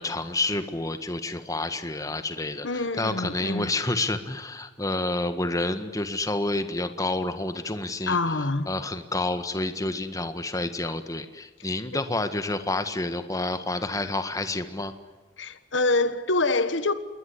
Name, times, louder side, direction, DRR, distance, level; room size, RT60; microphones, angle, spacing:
voice 1, 0.0-14.9, left 2 dB, 20° left, 1.6 m, -29 dB
voice 2, 2.6-3.7 8.1-8.7 15.4-16.9, left 2 dB, 80° left, 1.6 m, -25 dB
27.5 x 21.5 x 9.9 m
head